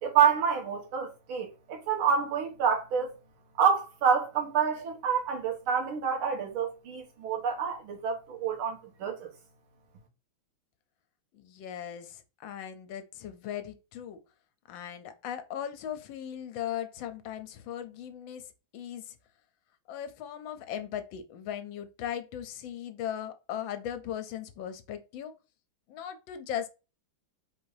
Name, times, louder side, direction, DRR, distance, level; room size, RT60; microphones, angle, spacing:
voice 1, 0.0-3.2 3.6-9.3, right 7 dB, 85° right, 2.0 m, -28 dB
voice 2, 11.3-14.2 14.7-19.2 19.9-25.4 25.9-26.7, left 10 dB, 75° left, 1.3 m, -38 dB
4.3 x 2.6 x 4.7 m
omnidirectional pair, 2.2 m